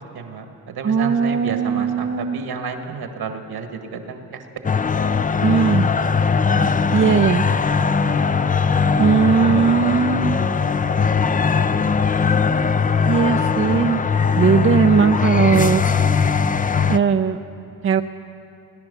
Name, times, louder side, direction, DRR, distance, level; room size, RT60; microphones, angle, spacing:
voice 1, 0.1-4.5, right 5 dB, 65° right, 6 dB, 1.6 m, -31 dB
voice 2, 0.8-2.4 5.4-5.9 6.9-7.4 9.0-10.4 13.1-14.0 14.3-15.8 16.9-17.4 17.8-18.0, right 6 dB, 30° right, 7 dB, 0.5 m, -18 dB
sound 1, 4.6-17.0, left 5 dB, 20° left, 0.5 m, -19 dB
18.0 x 10.5 x 6.9 m, 2.8 s
supercardioid pair, 55°, 41 cm